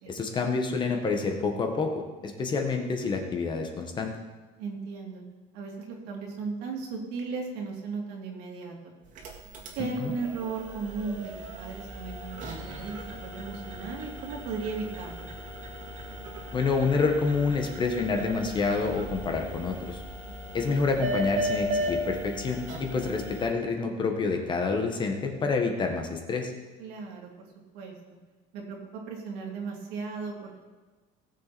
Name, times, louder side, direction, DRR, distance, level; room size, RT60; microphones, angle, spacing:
voice 1, 0.1-4.1 9.8-10.1 16.5-20.0 20.5-26.5, left 4 dB, 25° left, 4 dB, 1.5 m, -28 dB
voice 2, 4.6-5.2 5.5-8.9 9.7-15.3 20.4-20.6 26.8-27.5 27.7-27.9 28.5-30.5, right 4 dB, 75° right, 0 dB, 2.8 m, -36 dB
sound 1, 9.0-23.5, equal, 50° right, 2.4 m, -36 dB
18.0 x 7.5 x 4.2 m, 1.3 s
cardioid pair, 150°, 17 cm